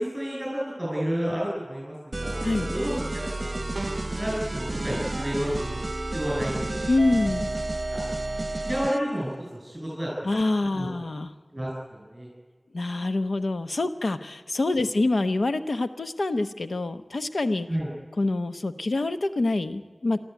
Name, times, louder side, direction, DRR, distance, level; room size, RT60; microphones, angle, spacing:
voice 1, 0.0-5.8 6.1-6.8 7.9-8.0 8.6-10.3 10.7-11.0 11.5-12.3 17.7-17.9, equal, 15° right, -4 dB, 7.2 m, -31 dB
sound 1, 2.1-9.0, right 2 dB, 45° right, 1.1 m, -31 dB
sound 2, 3.7-4.3, right 2 dB, 65° right, 0.6 m, -35 dB
voice 2, 6.9-7.5 10.2-11.3 12.7-17.7 18.2-20.2, left 2 dB, 85° left, 10 dB, 0.9 m, -26 dB
25.5 x 13.5 x 9.2 m, 1.4 s
wide cardioid pair, 50°, 0 cm